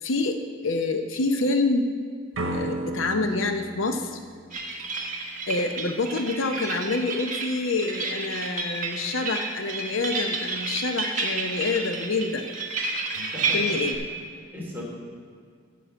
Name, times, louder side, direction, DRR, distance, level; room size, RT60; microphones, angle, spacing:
voice 1, 0.0-1.9 2.5-4.2 5.5-12.5 13.5-14.0, left 3 dB, 70° left, 6 dB, 0.7 m, -27 dB
sound 1, 2.3-5.2, right 1 dB, 75° right, 1.1 m, -34 dB
sound 2, 4.5-14.0, right 3 dB, 40° right, 1.4 m, -30 dB
voice 2, 13.1-14.2 14.5-14.8, left 1 dB, 10° right, -6 dB, 3.1 m, -38 dB
9.3 x 6.1 x 7.9 m, 2.1 s
head